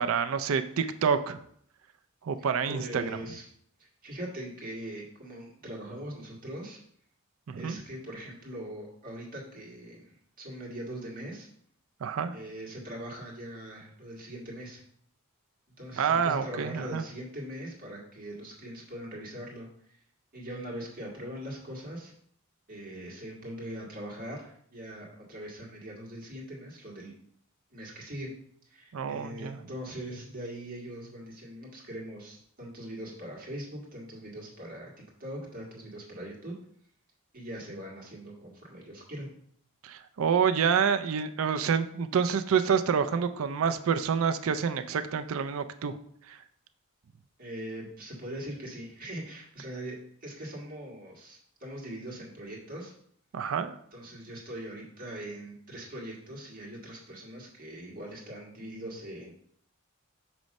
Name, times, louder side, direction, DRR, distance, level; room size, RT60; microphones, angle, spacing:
voice 1, 0.0-1.4 2.2-3.1 7.5-7.8 12.0-12.4 16.0-17.0 28.9-29.6 39.8-45.9 46.3-46.4 53.3-53.7, right 6 dB, 70° right, 10 dB, 0.4 m, -27 dB
voice 2, 2.7-3.4 3.8-6.8 7.6-11.5 12.3-14.8 15.8-20.0 20.3-22.1 22.7-27.1 27.7-28.3 28.6-34.9 35.2-36.5 37.3-39.3 47.4-52.9 53.9-59.3, right 1 dB, 40° right, -3 dB, 1.7 m, -41 dB
6.3 x 3.1 x 5.2 m, 0.66 s
head